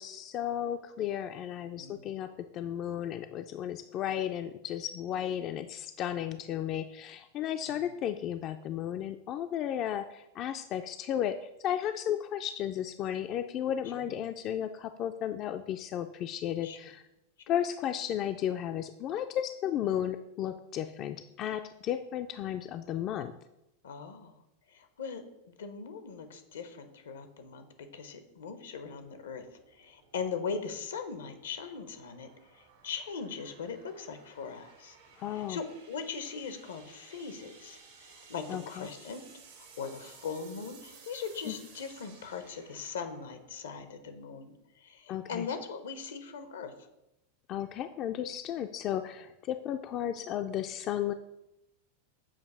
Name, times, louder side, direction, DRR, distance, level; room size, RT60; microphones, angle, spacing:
voice 1, 0.0-17.0 17.5-23.3 35.2-35.6 38.5-38.9 41.5-41.6 45.1-45.5 47.5-51.1, left 10 dB, 40° left, 8 dB, 0.3 m, -34 dB
voice 2, 1.8-2.1 7.7-7.8 13.8-14.2 16.6-16.8 23.8-24.3 24.7-27.6 27.9-29.4 29.7-35.0 35.3-39.2 39.8-46.9, left 5 dB, 85° left, 8 dB, 0.7 m, -40 dB
sound 1, 28.8-44.2, right 5 dB, 80° right, 1.5 m, -57 dB
7.2 x 2.6 x 5.4 m, 0.88 s
hypercardioid pair, 105°, 0 cm